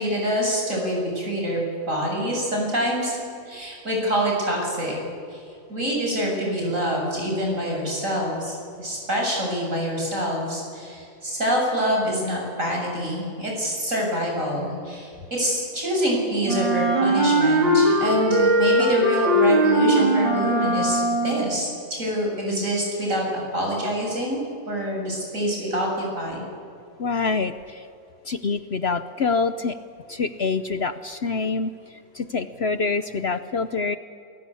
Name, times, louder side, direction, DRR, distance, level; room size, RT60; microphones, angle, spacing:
voice 1, 0.0-4.9 5.3-5.4 5.7-24.4 24.7-26.4, equal, 45° right, -1 dB, 7.7 m, -26 dB
Wind instrument woodwind instrument, 16.4-21.5, right 1 dB, 90° right, 4.8 m, -20 dB
voice 2, 27.0-27.8 28.3-29.8 30.1-31.7 32.1-34.0, left 4 dB, 55° left, 11 dB, 0.7 m, -25 dB
28.5 x 20.0 x 8.5 m, 2.4 s
omnidirectional pair, 2.0 m